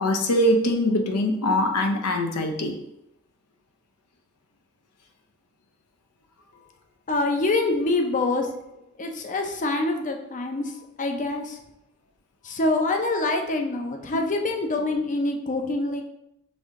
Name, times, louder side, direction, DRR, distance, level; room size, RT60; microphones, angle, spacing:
voice 1, 0.0-2.8 14.1-14.2, left 1 dB, 80° left, 4 dB, 0.6 m, -23 dB
voice 2, 7.1-8.5 9.0-11.6 12.4-16.0, left 2 dB, 35° left, 4 dB, 0.5 m, -25 dB
5.3 x 2.7 x 3.6 m, 0.83 s
head